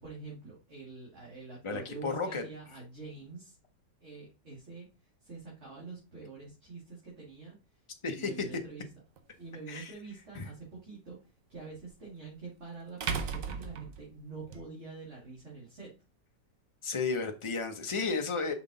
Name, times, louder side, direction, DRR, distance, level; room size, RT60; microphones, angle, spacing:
voice 1, 0.0-3.6 4.0-8.9 9.4-15.9, right 4 dB, 40° right, 2.3 m, -46 dB
voice 2, 1.6-2.4 8.0-8.3 9.7-9.9 10.3-10.5 16.8-18.5, left 4 dB, 35° left, 0.5 m, -33 dB
sound 1, 9.2-9.3 11.8-11.9 13.0-14.6, right 6 dB, 55° right, 1.1 m, -35 dB
5.7 x 4.7 x 3.9 m
omnidirectional pair, 1.9 m